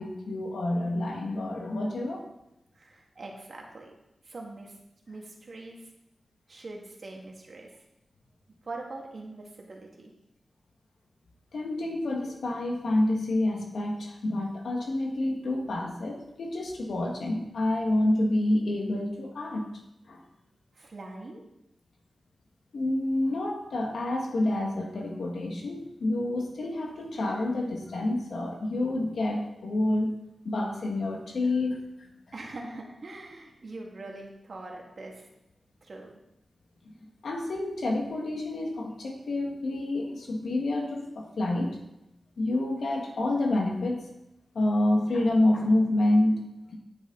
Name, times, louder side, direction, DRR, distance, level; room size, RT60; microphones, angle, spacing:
voice 1, 0.0-2.2 11.5-19.6 20.1-20.2 22.7-30.1 30.5-32.1 37.2-41.8 42.4-44.1 44.6-46.5, left 1 dB, 85° left, 1 dB, 1.8 m, -28 dB
voice 2, 2.7-3.9 4.2-4.8 5.1-5.9 6.5-7.7 8.6-10.1 20.7-21.4 32.3-35.3 35.8-36.1, right 2 dB, 60° right, 0 dB, 2.1 m, -42 dB
9.4 x 8.5 x 4.0 m, 0.87 s
wide cardioid pair, 95°, 0 cm